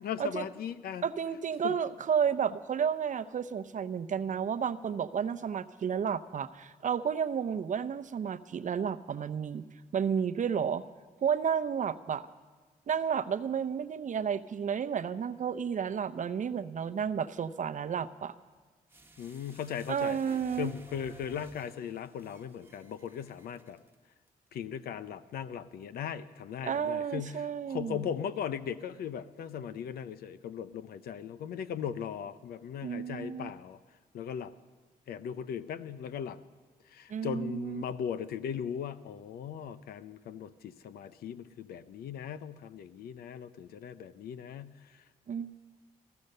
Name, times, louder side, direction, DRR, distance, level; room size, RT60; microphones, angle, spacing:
voice 1, 0.0-1.1 1.6-1.7 19.2-20.2 20.6-23.8 24.5-33.8 34.1-34.5 35.1-36.4 36.9-45.0, left 8 dB, 90° left, 14 dB, 0.6 m, -38 dB
voice 2, 1.0-9.6 9.9-10.8 11.2-12.3 12.9-18.3 19.9-20.7 26.6-28.0 32.8-33.5 37.1-37.8 45.3-45.5, right 7 dB, 55° right, 12 dB, 0.7 m, -32 dB
sound 1, 18.9-23.9 24.3-24.4, right 2 dB, 15° right, 1.2 m, -55 dB
15.0 x 14.5 x 6.6 m, 1.4 s
cardioid pair, 80°, 15 cm